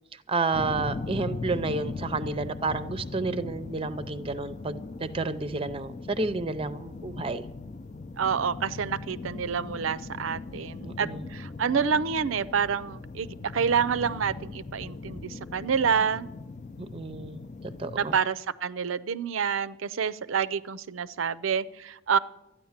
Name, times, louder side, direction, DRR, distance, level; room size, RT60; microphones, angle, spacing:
voice 1, 0.3-7.4 10.8-11.3 16.8-18.2, right 3 dB, 30° right, 13 dB, 0.6 m, -31 dB
sound 1, 0.5-18.2, left 3 dB, 40° left, 0.5 m, -39 dB
voice 2, 8.2-13.3 13.5-16.3 17.9-22.2, right 6 dB, 90° right, 17 dB, 0.5 m, -28 dB
13.0 x 9.9 x 7.2 m, 0.92 s
head